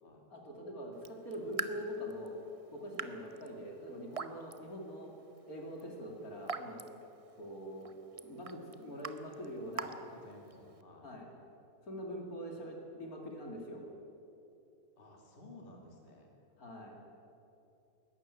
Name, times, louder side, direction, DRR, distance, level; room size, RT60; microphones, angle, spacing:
voice 1, 0.3-2.4 2.7-5.1 5.5-6.8 7.4-7.9 8.2-10.0 11.0-11.3 11.9-13.8 16.6-17.0, equal, 55° left, 0 dB, 3.0 m, -43 dB
Raindrop / Drip, 0.9-10.8, right 4 dB, 45° right, 0.4 m, -46 dB
voice 2, 9.7-11.2 15.0-16.3, left 1 dB, 30° left, 1 dB, 2.7 m, -55 dB
21.0 x 12.5 x 9.8 m, 2.8 s
omnidirectional pair, 1.8 m